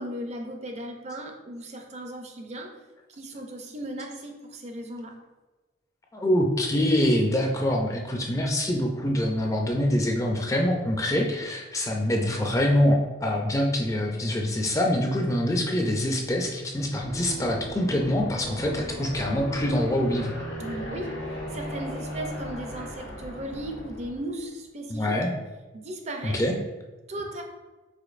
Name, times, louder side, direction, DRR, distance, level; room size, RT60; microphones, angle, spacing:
voice 1, 0.0-2.8 3.1-5.2 20.6-21.2 21.5-25.2 25.7-26.4 27.1-27.4, right 1 dB, 35° right, 3 dB, 0.5 m, -36 dB
voice 2, 6.1-20.3 24.9-25.3 26.2-26.6, left 1 dB, 15° left, 0 dB, 0.4 m, -25 dB
Aircraft, 17.0-24.3, equal, 85° left, 1.5 m, -37 dB
5.0 x 4.1 x 2.4 m, 1.2 s
head